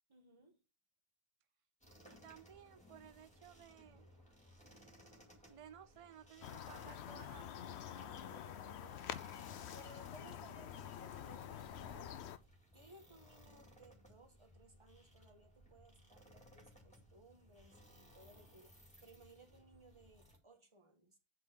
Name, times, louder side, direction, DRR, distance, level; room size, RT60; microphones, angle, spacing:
voice 1, 0.1-0.6 9.5-12.2 12.7-21.2, right 2 dB, 30° right, 1.4 m, -62 dB
sound 1, 1.8-20.4, equal, 5° left, 2.1 m, -63 dB
voice 2, 2.0-4.1 5.5-9.2, right 9 dB, 65° right, 0.3 m, -58 dB
sound 2, 6.4-12.4, left 10 dB, 85° left, 0.9 m, -47 dB
8.1 x 4.0 x 6.9 m
omnidirectional pair, 1.1 m